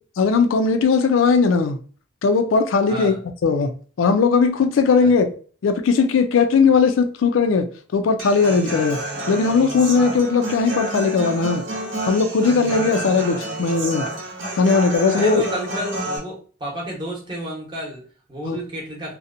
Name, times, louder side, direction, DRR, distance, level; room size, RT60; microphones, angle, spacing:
voice 1, 0.2-1.8 2.2-3.1 3.4-3.7 4.0-5.3 5.6-7.7 7.9-9.0 9.3-11.6 12.0-14.1 14.5-15.4 18.4-18.6, left 5 dB, 80° left, 0.4 m, -18 dB
voice 2, 2.9-3.2 5.0-5.1 15.1-19.1, equal, 25° right, 0.8 m, -31 dB
Human voice / Acoustic guitar, 8.2-16.2, right 1 dB, 70° right, 0.8 m, -29 dB
2.7 x 2.1 x 2.5 m
head